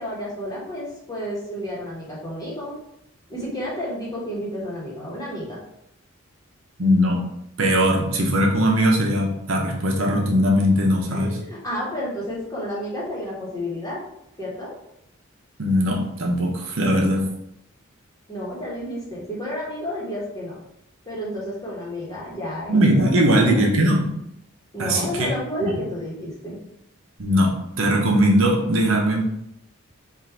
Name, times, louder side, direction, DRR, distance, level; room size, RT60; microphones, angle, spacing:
voice 1, 0.0-2.7 3.3-5.6 11.1-14.0 14.4-14.7 18.3-20.6 21.0-23.7 24.7-26.6, equal, 15° left, -6 dB, 1.2 m, -31 dB
voice 2, 6.8-7.3 7.6-11.4 15.6-17.3 22.7-24.1 24.8-25.3 25.6-25.7 27.2-29.3, equal, 70° right, 0 dB, 0.8 m, -20 dB
3.6 x 2.5 x 4.3 m, 0.79 s
head